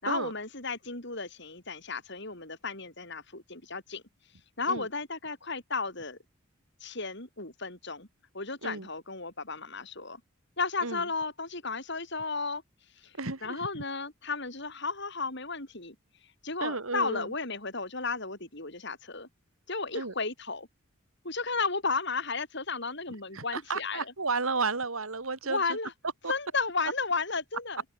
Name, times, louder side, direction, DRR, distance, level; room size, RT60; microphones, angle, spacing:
voice 1, 0.0-4.0 4.6-6.2 6.8-8.1 8.3-10.2 10.6-12.6 13.0-13.1 13.4-16.0 16.4-19.3 19.7-20.7 21.2-24.1 25.4-25.9 26.3-27.8, left 4 dB, 55° left, 7.4 m, -34 dB
voice 2, 13.2-13.6 16.6-17.3 19.9-20.1 23.3-25.6 26.2-26.3, right 4 dB, 85° right, 2.9 m, -32 dB
open air
head